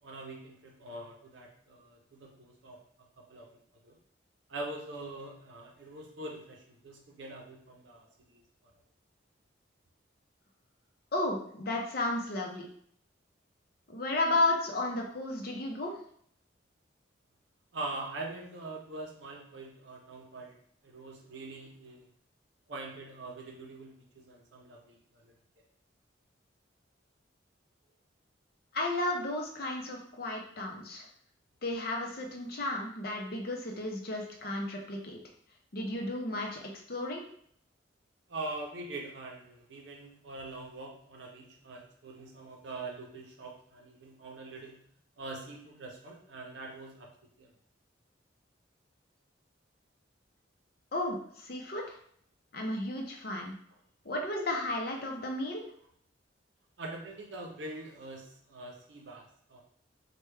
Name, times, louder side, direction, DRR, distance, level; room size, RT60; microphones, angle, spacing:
voice 1, 0.0-2.8 3.3-3.5 3.8-4.0 4.5-8.4 17.7-20.6 20.8-22.1 22.7-25.3 38.3-44.8 45.2-47.1 47.4-47.5 56.8-59.6, right 2 dB, 70° right, 0 dB, 0.6 m, -43 dB
voice 2, 11.1-12.7 13.9-15.9 28.7-31.1 31.6-35.2 35.7-37.2 50.9-52.0 52.5-53.5 54.0-55.6, left 2 dB, 50° left, 1 dB, 0.6 m, -33 dB
3.3 x 2.2 x 3.2 m, 0.63 s
head